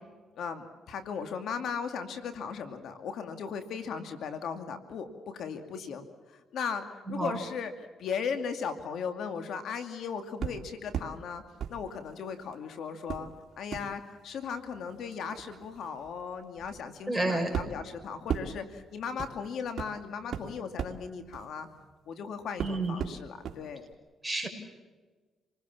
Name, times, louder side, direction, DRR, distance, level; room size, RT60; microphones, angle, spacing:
voice 1, 0.4-11.4 11.7-13.3 13.6-21.7 22.1-23.9, left 6 dB, 70° left, 7 dB, 2.4 m, -37 dB
sound 1, 10.4-11.2 11.6-12.6 13.1-22.2 22.6-23.6 23.9-24.0, right 8 dB, 60° right, 2.6 m, -39 dB
voice 2, 17.1-17.6 22.6-23.0 24.2-24.5, right 2 dB, 5° right, 3 dB, 6.2 m, -30 dB
28.0 x 19.5 x 7.2 m, 1.3 s
cardioid pair, 90°, 0 cm